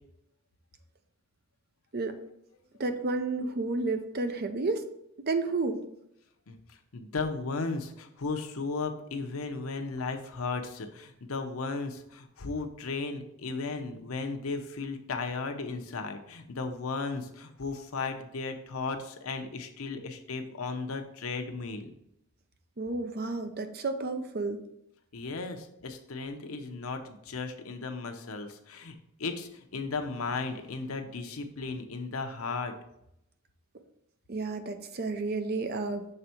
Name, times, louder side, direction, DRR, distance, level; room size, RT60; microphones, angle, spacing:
voice 1, 2.8-4.9 5.3-5.8 22.8-24.6 34.3-36.1, right 3 dB, 45° right, 7 dB, 0.6 m, -31 dB
voice 2, 6.5-21.9 25.1-32.7, left 4 dB, 85° left, 5 dB, 0.8 m, -35 dB
6.7 x 3.5 x 4.4 m, 0.80 s
head